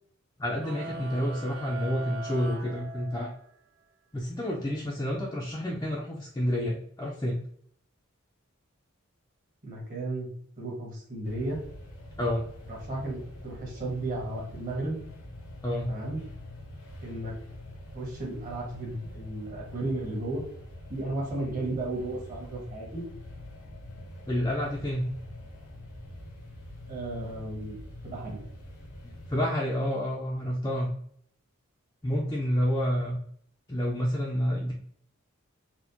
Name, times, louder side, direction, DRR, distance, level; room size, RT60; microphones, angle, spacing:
voice 1, 0.4-3.3 4.1-7.4 12.2-12.4 15.6-15.9 24.3-25.1 29.3-30.9 32.0-33.2 33.7-34.7, equal, 15° left, -4 dB, 0.4 m, -29 dB
sound 1, 0.6-3.6, right 2 dB, 65° right, 0.5 m, -41 dB
voice 2, 9.6-10.3 10.6-11.6 12.7-13.2 13.4-15.0 15.9-16.2 17.0-17.3 17.9-20.4 20.9-23.0 26.9-27.8 28.0-28.4, right 2 dB, 40° right, -3 dB, 1.3 m, -34 dB
sound 2, 11.2-29.4, left 1 dB, 85° left, 0.9 m, -45 dB
4.2 x 2.2 x 2.8 m, 0.63 s
head